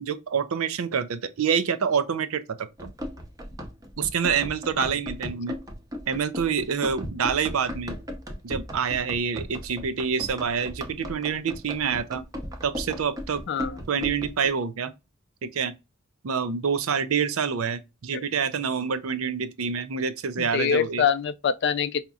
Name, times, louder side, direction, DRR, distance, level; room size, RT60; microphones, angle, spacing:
voice 1, 0.0-2.9 4.0-5.6 6.1-8.0 8.4-12.2 12.6-13.4 13.9-14.9 15.4-15.7 16.2-21.0, right 6 dB, 75° right, 0.5 m, -27 dB
Run, 2.8-14.5, equal, 15° right, 0.7 m, -37 dB
voice 2, 13.5-13.8 18.1-18.2 20.4-22.0, left 7 dB, 55° left, 0.4 m, -25 dB
5.1 x 2.8 x 2.3 m
head